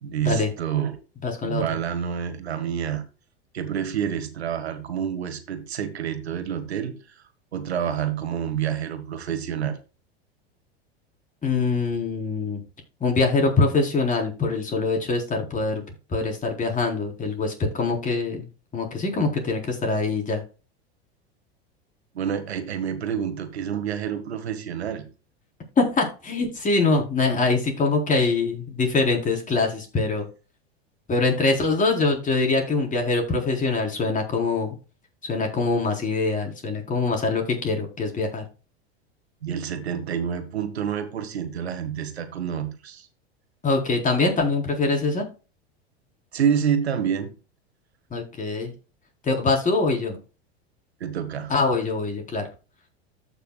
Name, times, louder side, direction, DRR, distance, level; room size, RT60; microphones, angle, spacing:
voice 1, 0.0-1.0 1.4-3.0 3.5-7.2 7.5-9.8 22.1-25.1 39.4-43.1 46.3-47.3 51.0-51.5, right 8 dB, 85° right, 1.7 m, -28 dB
voice 2, 1.2-1.8 11.4-12.6 13.0-15.8 16.1-18.5 18.7-20.4 25.8-30.3 31.1-34.7 35.2-38.4 43.6-45.3 48.1-48.7 49.2-50.2 51.5-52.5, left 3 dB, 25° left, 4.1 m, -23 dB
14.5 x 6.1 x 2.3 m
hypercardioid pair, 95°, 32 cm